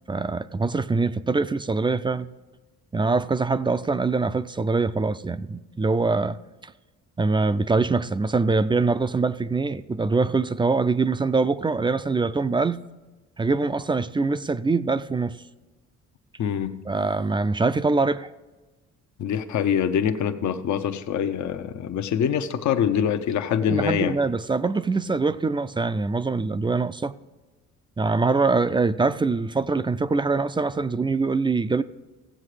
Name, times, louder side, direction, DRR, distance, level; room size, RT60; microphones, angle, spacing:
voice 1, 0.1-2.3 2.9-6.7 7.2-12.8 13.4-15.4 16.9-18.3 23.7-27.2 28.0-31.8, right 3 dB, 15° right, 0.4 m, -24 dB
voice 2, 16.4-16.8 19.2-24.1, left 8 dB, 70° left, 0.8 m, -24 dB
15.5 x 7.7 x 4.9 m
cardioid pair, 90°, 30 cm